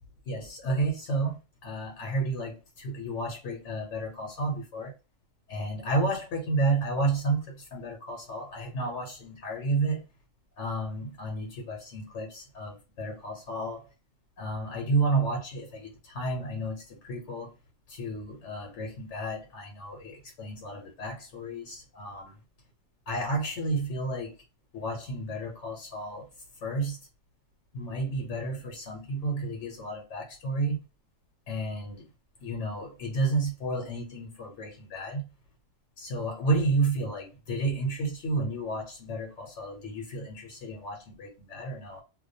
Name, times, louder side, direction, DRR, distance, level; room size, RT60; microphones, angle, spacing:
voice 1, 0.3-4.9 5.5-10.0 10.6-13.9 14.4-17.5 17.9-22.4 23.1-24.4 24.7-26.3 26.6-27.0 27.7-30.8 31.5-32.1 32.4-35.3 36.0-42.0, right 2 dB, 90° left, 1.1 m, -31 dB
2.3 x 2.2 x 2.6 m
omnidirectional pair, 1.2 m